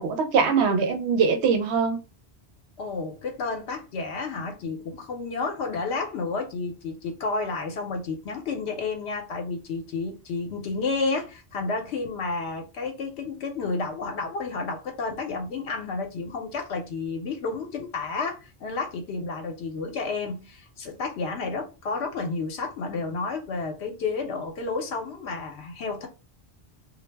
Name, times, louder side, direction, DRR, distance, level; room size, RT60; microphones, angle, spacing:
voice 1, 0.0-2.0, right 5 dB, 80° right, 0.9 m, -22 dB
voice 2, 2.8-26.1, left 4 dB, 75° left, 0.8 m, -31 dB
2.2 x 2.0 x 3.2 m
omnidirectional pair, 1.1 m